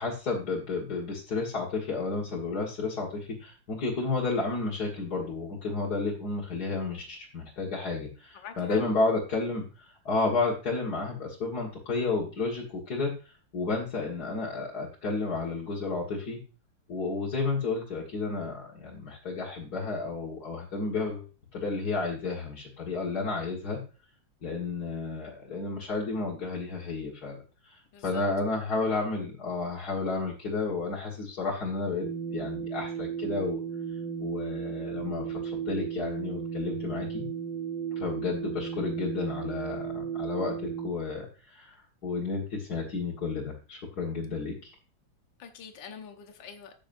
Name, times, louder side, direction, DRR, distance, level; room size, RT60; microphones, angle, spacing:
voice 1, 0.0-16.4 16.9-21.3 21.5-23.8 24.4-32.1 32.3-33.6 34.2-37.3 38.0-41.8 42.0-44.7, left 3 dB, 55° left, -5 dB, 2.2 m, -32 dB
voice 2, 8.3-8.8 27.9-28.2 45.4-46.7, left 7 dB, 75° left, 5 dB, 1.7 m, -45 dB
sound 1, 32.0-40.9, right 7 dB, 85° right, 1.7 m, -35 dB
14.5 x 6.3 x 2.6 m, 0.35 s
omnidirectional pair, 2.0 m